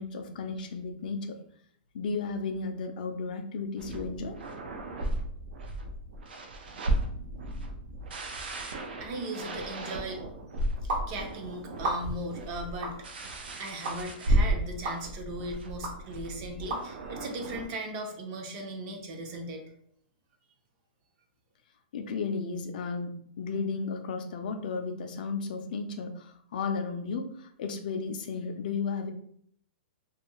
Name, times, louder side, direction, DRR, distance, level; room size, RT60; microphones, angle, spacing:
voice 1, 0.0-1.4 1.9-4.4 21.9-29.1, left 4 dB, 60° left, 6 dB, 0.4 m, -34 dB
sound 1, 3.8-17.7, right 1 dB, 85° right, 0.5 m, -34 dB
voice 2, 9.0-10.2 11.1-19.6, right 1 dB, 30° right, 3 dB, 0.5 m, -38 dB
sound 2, 10.9-11.0 11.8-12.3 12.8-13.0 13.8-14.0 14.8-15.0 15.8-15.9 16.7-16.8, right 2 dB, 70° right, 1.0 m, -31 dB
2.5 x 2.3 x 2.9 m, 0.65 s
hypercardioid pair, 165°, 5 cm